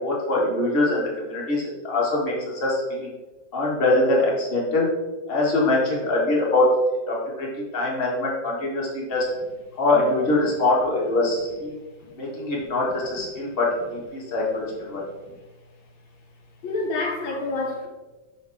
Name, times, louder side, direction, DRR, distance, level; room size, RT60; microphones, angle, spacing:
voice 1, 0.0-3.1 3.5-4.9 5.3-6.6 7.1-7.5 7.7-9.2 9.8-11.7 12.2-15.0, left 2 dB, 30° left, -3 dB, 1.5 m, -23 dB
voice 2, 16.6-17.9, left 2 dB, 75° left, 1 dB, 1.4 m, -27 dB
6.3 x 5.6 x 3.5 m, 1.2 s
omnidirectional pair, 2.2 m